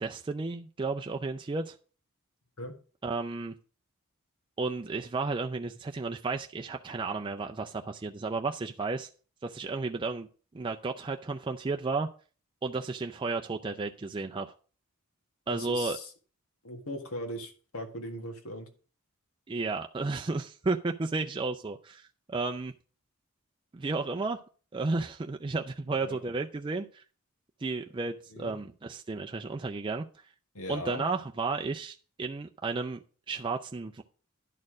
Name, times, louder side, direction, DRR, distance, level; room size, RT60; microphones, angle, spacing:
voice 1, 0.0-1.8 3.0-3.5 4.6-9.1 9.4-10.3 10.5-12.1 12.6-14.5 15.5-16.0 19.5-22.7 23.7-24.4 24.7-27.0 27.6-30.0 30.7-34.0, right 3 dB, 20° right, 4 dB, 0.4 m, -33 dB
voice 2, 15.5-16.1 16.6-18.7 26.0-26.2 28.3-28.6 30.5-31.0, left 1 dB, 70° left, 4 dB, 1.7 m, -39 dB
11.0 x 4.4 x 6.1 m, 0.38 s
head